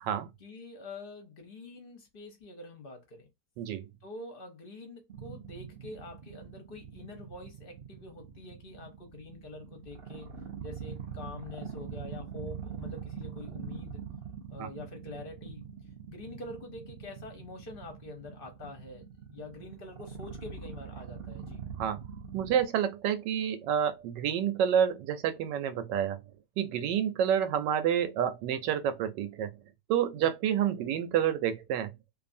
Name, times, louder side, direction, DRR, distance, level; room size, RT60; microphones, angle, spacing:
voice 1, 0.4-3.3 4.0-10.3 10.6-14.0 14.5-15.6 16.1-21.6 30.2-30.3, left 2 dB, 45° left, 0.8 m, -46 dB
sound 1, 5.1-22.6, right 7 dB, 65° right, 0.6 m, -43 dB
voice 2, 22.3-26.2 26.6-29.5 29.9-31.9, right 9 dB, 85° right, 1.2 m, -29 dB
2.6 x 2.6 x 2.5 m
omnidirectional pair, 1.9 m